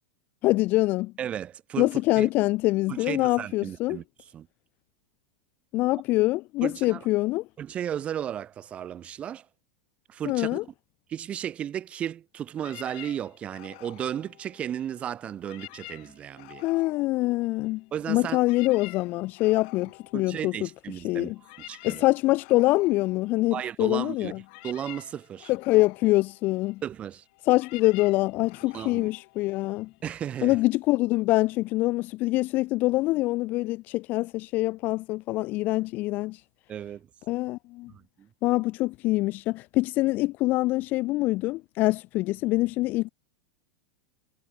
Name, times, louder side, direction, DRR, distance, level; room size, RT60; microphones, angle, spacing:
voice 1, 0.4-1.1 1.8-4.0 5.7-7.5 10.3-10.6 16.6-20.7 21.0-21.4 21.8-24.4 25.5-26.8 27.4-29.9 30.4-36.4 37.3-37.9 38.4-43.1, left 19 dB, 30° left, 0.3 m, -25 dB
voice 2, 1.2-1.9 2.2-2.3 2.9-4.0 4.3-4.5 6.6-7.1 7.6-9.5 10.1-10.6 11.1-16.6 17.9-18.4 20.1-21.3 21.7-22.0 23.5-24.3 24.6-25.5 26.8-27.2 28.7-29.1 30.0-30.6 36.7-37.1 37.9-38.3, right 10 dB, 20° right, 2.8 m, -34 dB
sound 1, 12.5-15.0 15.3-17.9 18.2-30.1, left 28 dB, 45° left, 4.2 m, -49 dB
supercardioid pair, 170°, 6 cm